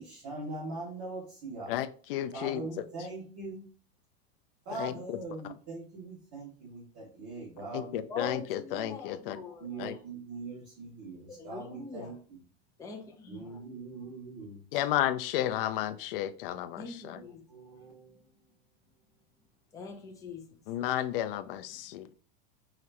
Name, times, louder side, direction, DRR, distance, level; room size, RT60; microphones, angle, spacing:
voice 1, 0.0-1.7 2.3-3.7 4.6-8.3 9.3-9.4 9.6-12.4 13.3-14.8 17.1-18.5, right 3 dB, 35° right, -8 dB, 2.0 m, -42 dB
voice 2, 1.7-2.6 4.8-4.9 7.7-9.4 9.8-9.9 14.7-17.2 20.7-22.1, left 12 dB, 60° left, 12 dB, 0.5 m, -32 dB
voice 3, 8.1-9.7 11.4-12.1 12.8-13.6 16.8-17.4 19.7-20.4, left 4 dB, 10° left, 1 dB, 0.6 m, -42 dB
4.9 x 3.1 x 2.9 m, 0.41 s
supercardioid pair, 155°, 31 cm